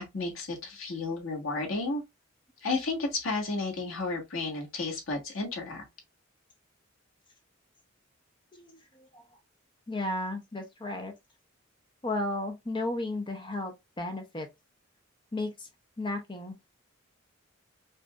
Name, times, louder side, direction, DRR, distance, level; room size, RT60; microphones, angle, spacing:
voice 1, 0.0-2.0 2.6-5.8, left 3 dB, 80° left, 1.6 m, -32 dB
voice 2, 8.5-9.2 9.9-11.1 12.0-14.5 15.3-15.7 16.0-16.6, left 2 dB, 25° left, 0.7 m, -34 dB
5.0 x 2.6 x 2.3 m
head